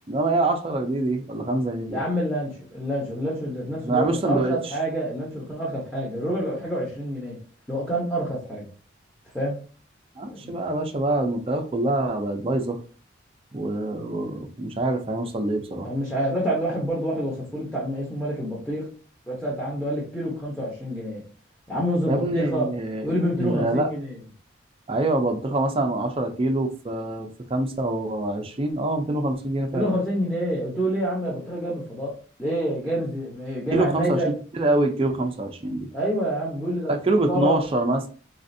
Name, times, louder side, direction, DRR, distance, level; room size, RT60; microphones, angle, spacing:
voice 1, 0.1-2.0 3.8-4.5 10.2-12.8 13.5-15.9 22.1-23.1 23.4-23.9 24.9-29.9 33.7-34.2 34.5-35.9 36.9-38.1, right 2 dB, 30° right, 0.4 m, -25 dB
voice 2, 1.9-7.4 7.7-8.7 9.3-9.6 10.3-10.5 15.8-18.9 19.3-21.2 21.7-22.7 23.0-24.2 29.7-34.3 35.9-36.9 37.2-37.6, equal, 5° left, 0.8 m, -27 dB
4.1 x 2.5 x 2.6 m
head